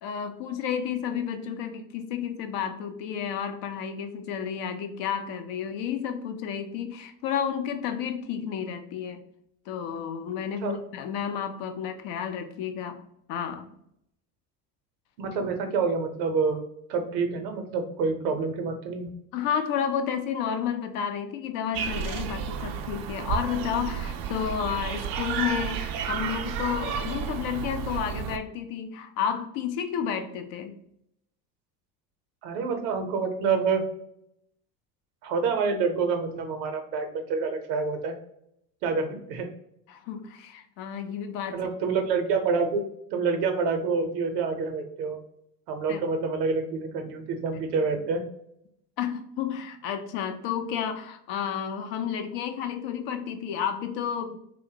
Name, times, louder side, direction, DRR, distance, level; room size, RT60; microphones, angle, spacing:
voice 1, 0.0-9.2 9.7-13.0 13.3-13.7 19.3-30.7 39.9-41.6 45.9-46.0 49.0-54.4, left 8 dB, 60° left, 7 dB, 0.6 m, -31 dB
voice 2, 15.2-16.6 16.9-19.1 32.4-33.8 35.2-38.1 38.8-39.5 41.5-42.8 43.1-45.2 45.7-48.2, right 4 dB, 75° right, 5 dB, 0.7 m, -27 dB
sound 1, 21.7-28.4, right 7 dB, 45° right, 0.4 m, -32 dB
2.5 x 2.1 x 2.7 m, 0.76 s
hypercardioid pair, 70°, 50 cm